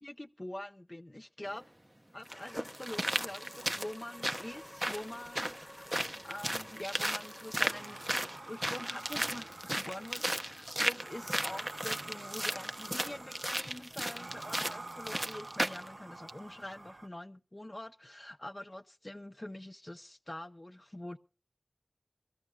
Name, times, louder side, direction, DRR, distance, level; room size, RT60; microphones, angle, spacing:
voice 1, 0.0-1.6 2.1-5.9 6.2-8.0 8.5-21.2, left 1 dB, 35° left, 0.7 m, -45 dB
sound 1, 1.5-1.6 2.3-15.9 16.3-16.4, right 1 dB, 20° right, 0.7 m, -35 dB
sound 2, 2.3-8.8, equal, 5° left, 1.1 m, -52 dB
sound 3, 7.6-17.1, right 2 dB, 80° right, 0.9 m, -48 dB
24.5 x 15.5 x 2.3 m
wide cardioid pair, 40°, 0 cm